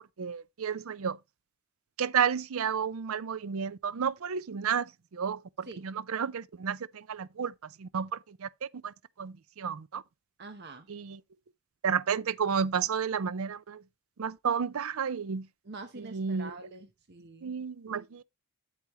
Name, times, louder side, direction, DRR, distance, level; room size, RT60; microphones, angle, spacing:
voice 1, 0.2-1.2 2.0-4.9 5.1-7.5 7.8-8.1 8.4-8.5 8.8-8.9 9.2-10.0 10.9-11.2 11.8-13.8 14.2-15.4 16.1-16.5 17.4-18.2, right 7 dB, 80° right, 0.5 m, -31 dB
voice 2, 10.4-10.9 15.6-17.5, right 3 dB, 50° right, 1.0 m, -45 dB
8.3 x 8.1 x 3.0 m
head